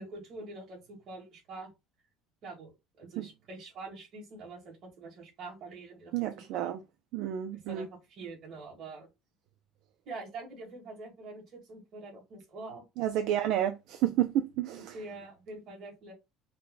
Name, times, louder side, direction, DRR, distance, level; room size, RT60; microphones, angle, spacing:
voice 1, 0.0-1.7 2.4-6.3 6.5-6.7 7.5-9.1 10.0-12.8 13.3-13.5 14.9-16.1, right 3 dB, 45° right, 2.5 m, -45 dB
voice 2, 6.1-6.8 7.1-7.9 13.0-14.9, right 11 dB, 65° right, 0.5 m, -30 dB
5.4 x 2.2 x 3.9 m
cardioid pair, 160°, 0 cm